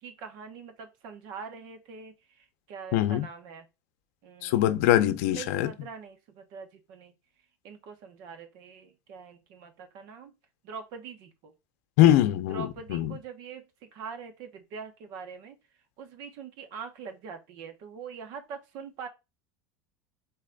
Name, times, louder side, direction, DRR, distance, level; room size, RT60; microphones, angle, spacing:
voice 1, 0.0-3.7 4.2-4.7 5.3-7.1 7.6-10.3 10.6-11.5 12.5-13.6 13.9-15.6 16.0-19.1, right 6 dB, 55° right, 1.1 m, -43 dB
voice 2, 2.9-3.3 4.4-5.7 12.0-13.1, left 13 dB, 70° left, 0.6 m, -22 dB
4.1 x 3.3 x 3.9 m
cardioid pair, 155°, 8 cm